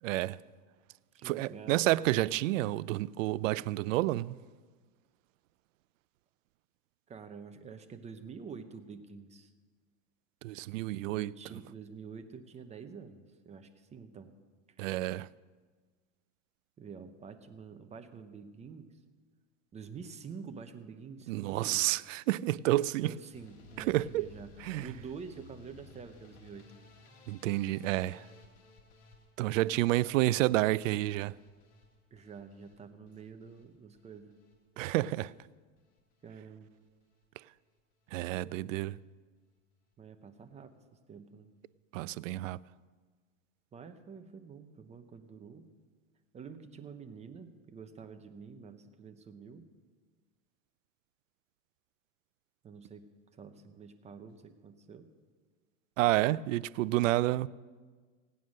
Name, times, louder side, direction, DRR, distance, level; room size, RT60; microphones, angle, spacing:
voice 1, 0.0-0.4 1.2-4.4 10.4-11.6 14.8-15.3 21.3-23.1 23.8-24.3 24.6-24.9 27.3-28.3 29.4-31.3 34.8-35.3 38.1-39.0 41.9-42.6 56.0-57.5, right 16 dB, 80° right, 0.5 m, -30 dB
voice 2, 1.1-2.0 7.1-9.5 11.1-14.3 16.8-18.9 19.7-21.9 23.0-26.7 32.1-34.4 36.2-36.7 40.0-40.7 41.1-41.5 43.7-45.7 46.3-49.6 52.6-53.1 53.4-55.1, right 6 dB, 15° right, 0.8 m, -48 dB
sound 1, 23.3-35.5 35.8-36.3 36.7-37.2 37.6-37.8 38.1-38.2 38.5-38.6, left 4 dB, 60° left, 3.2 m, -58 dB
17.5 x 9.3 x 6.4 m
supercardioid pair, 145°, 38 cm